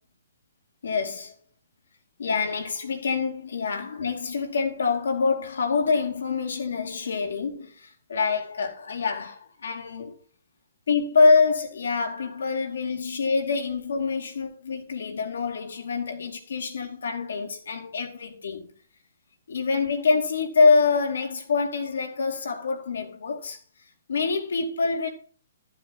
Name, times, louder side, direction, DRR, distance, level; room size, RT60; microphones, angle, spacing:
voice 1, 0.8-1.4 2.2-10.1 10.9-18.7 19.5-23.6 24.1-25.1, left 4 dB, 80° left, 2.6 m, -25 dB
12.5 x 7.2 x 4.0 m
hypercardioid pair, 145°, 0 cm